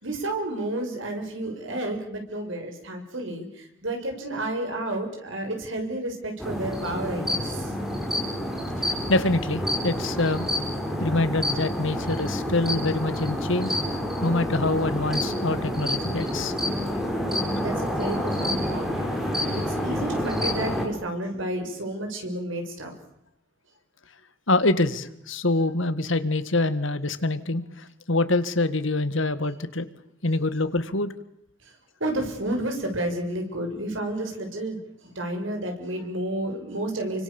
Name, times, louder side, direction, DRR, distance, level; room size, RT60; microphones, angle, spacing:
voice 1, 0.0-7.7 16.6-16.7 17.3-19.1 19.5-22.9 32.0-37.2, right 1 dB, 70° right, 4 dB, 6.8 m, -31 dB
sound 1, 6.4-20.9, left 1 dB, ahead, 5.2 m, -28 dB
voice 2, 8.8-10.5 11.0-13.8 14.2-16.5 24.5-29.9 30.2-31.1, left 2 dB, 70° left, 12 dB, 1.9 m, -25 dB
29.5 x 25.0 x 7.3 m, 0.79 s
head